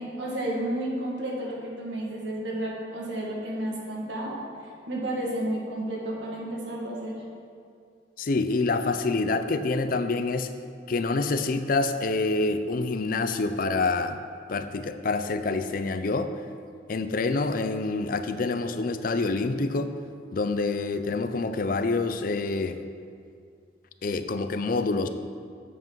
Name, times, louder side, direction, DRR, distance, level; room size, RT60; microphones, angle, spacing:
voice 1, 0.0-4.4 4.9-7.2, right 1 dB, 80° right, -3 dB, 1.9 m, -31 dB
voice 2, 8.2-10.5 10.9-14.2 14.5-16.3 16.9-19.9 20.3-22.8 24.0-25.1, left 3 dB, 50° left, 10 dB, 0.5 m, -27 dB
7.9 x 7.5 x 4.7 m, 2.2 s
head